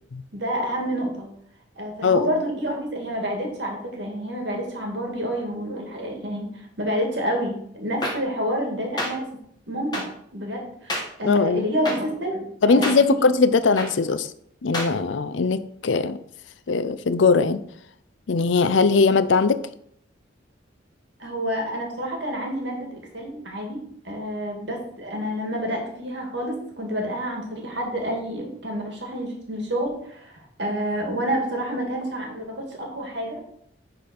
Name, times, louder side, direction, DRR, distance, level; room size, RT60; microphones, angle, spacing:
voice 1, 0.3-1.3 1.8-6.5 6.8-9.3 9.7-10.1 10.3-13.2 21.2-23.8 24.0-33.4, equal, 65° right, 1 dB, 2.0 m, -29 dB
voice 2, 2.0-2.3 11.2-11.7 12.6-14.3 14.6-16.2 16.7-17.6 18.3-19.6, left 4 dB, 75° left, 13 dB, 0.5 m, -20 dB
sound 1, 8.0-8.1 9.0-9.1 9.9-10.0 10.9-11.0 11.8-12.0 12.8-12.9 13.8-13.9 14.7-14.9, left 1 dB, 20° left, 1.5 m, -26 dB
10.0 x 4.0 x 4.3 m, 0.70 s
head